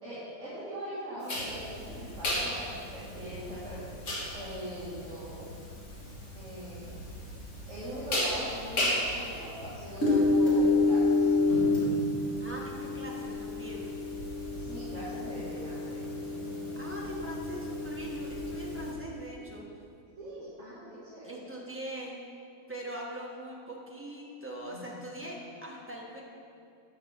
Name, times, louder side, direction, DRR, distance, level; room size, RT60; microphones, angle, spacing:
voice 1, 0.0-3.8 4.3-5.5 6.3-6.9 7.7-11.3 14.5-16.0 16.4-16.8 20.2-21.3 24.7-24.8 25.2-25.3, equal, 35° right, -11 dB, 2.4 m, -42 dB
sound 1, 1.3-18.9, left 2 dB, 40° left, 1.9 m, -30 dB
voice 2, 12.4-14.0 16.7-19.6 21.2-22.2 22.7-26.2, right 1 dB, 10° right, -4 dB, 0.8 m, -42 dB
9.3 x 6.6 x 5.8 m, 2.6 s
omnidirectional pair, 2.3 m